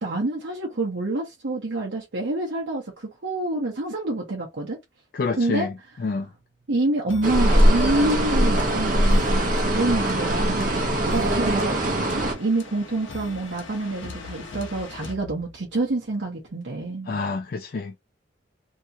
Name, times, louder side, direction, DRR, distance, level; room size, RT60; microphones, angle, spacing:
voice 1, 0.0-4.8 5.4-5.7 6.7-11.8 12.2-17.1, right 2 dB, 75° right, 0.8 m, -27 dB
voice 2, 5.1-5.7 6.0-6.3 17.1-18.0, left 4 dB, 50° left, 0.3 m, -27 dB
sound 1, 7.1-15.9, left 3 dB, 85° left, 0.8 m, -42 dB
sound 2, 7.2-12.3, right 1 dB, 45° right, 0.7 m, -21 dB
2.8 x 2.4 x 2.7 m
head